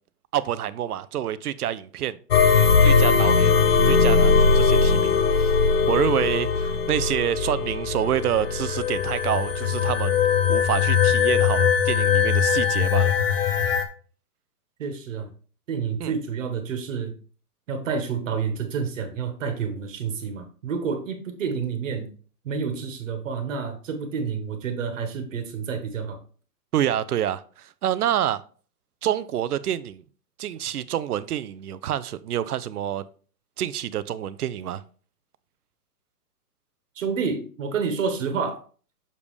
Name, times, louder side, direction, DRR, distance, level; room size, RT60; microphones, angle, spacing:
voice 1, 0.3-2.2 2.8-3.5 3.8-5.5 5.9-10.2 10.5-13.1 16.0-16.2 26.7-28.4 29.0-30.0 30.4-33.0 33.6-34.8, right 11 dB, 70° right, 0.7 m, -27 dB
sound 1, 2.3-13.8, left 5 dB, 40° left, 0.7 m, -20 dB
voice 2, 14.8-15.3 15.7-17.1 17.7-22.1 22.4-26.2 36.9-38.6, right 6 dB, 50° right, 1.5 m, -29 dB
6.8 x 5.3 x 3.3 m
hypercardioid pair, 165°, 48 cm